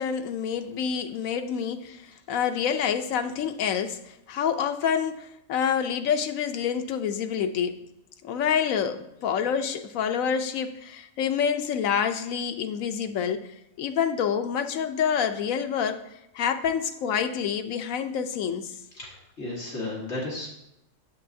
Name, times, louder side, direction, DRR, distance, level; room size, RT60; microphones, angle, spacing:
voice 1, 0.0-7.8 8.2-16.0 16.3-18.8 20.3-20.4, left 7 dB, 90° left, 1.1 m, -27 dB
voice 2, 19.0-20.5, left 2 dB, 55° left, 2.0 m, -34 dB
8.5 x 7.5 x 2.7 m
omnidirectional pair, 1.4 m